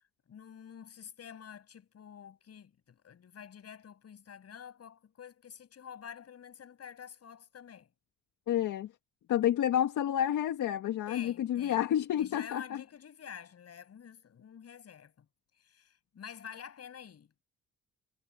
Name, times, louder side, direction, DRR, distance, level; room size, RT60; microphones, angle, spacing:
voice 1, 0.3-7.9 11.1-11.8 12.2-15.3 15.6-17.4, left 8 dB, 55° left, 6.9 m, -49 dB
voice 2, 8.5-8.9 9.3-12.8, left 11 dB, 75° left, 1.9 m, -29 dB
cardioid pair, 90°, 30 cm